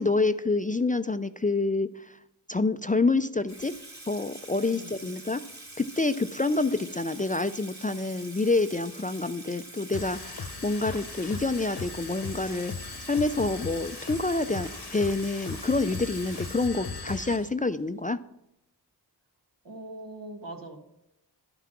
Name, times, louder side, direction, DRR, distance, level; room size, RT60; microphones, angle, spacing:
voice 1, 0.0-2.1 2.5-3.7 4.1-5.4 5.8-12.7 13.1-18.2, left 3 dB, 20° left, 12 dB, 0.3 m, -27 dB
Water tap faucet / Sink (filling or washing), 3.5-17.2, right 2 dB, 40° right, 2.1 m, -46 dB
voice 2, 4.7-5.1 19.6-20.8, right 2 dB, 80° right, 2 dB, 1.7 m, -42 dB
sound 1, 9.9-17.5, left 5 dB, 70° left, 1.0 m, -38 dB
11.5 x 5.8 x 6.0 m, 0.84 s
wide cardioid pair, 40°, 42 cm